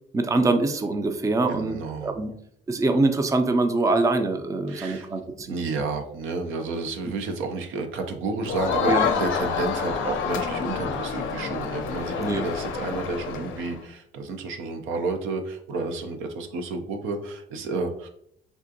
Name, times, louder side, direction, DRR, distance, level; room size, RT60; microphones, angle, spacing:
voice 1, 0.1-2.3 2.7-5.5 8.9-9.0 12.2-12.5, right 2 dB, 15° right, 7 dB, 0.4 m, -24 dB
voice 2, 1.5-2.2 4.7-5.1 5.5-18.1, right 3 dB, 90° right, 5 dB, 0.5 m, -31 dB
Crowd, 8.4-13.8, left 7 dB, 75° left, 0.5 m, -28 dB
3.5 x 2.5 x 2.6 m, 0.69 s
cardioid pair, 90°, 20 cm